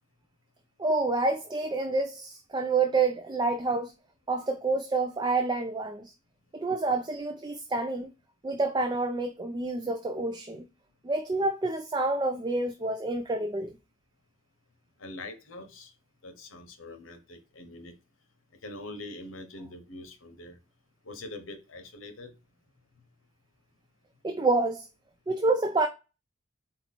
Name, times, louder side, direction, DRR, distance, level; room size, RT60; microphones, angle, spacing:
voice 1, 0.8-3.9 4.3-6.1 6.5-8.1 8.4-10.7 11.0-13.8 24.2-24.9 25.3-25.9, right 3 dB, 20° right, 0.4 m, -28 dB
voice 2, 15.0-15.9 16.2-17.9 18.6-20.6 21.0-22.3, left 2 dB, 85° left, 1.0 m, -43 dB
4.4 x 2.9 x 4.1 m
head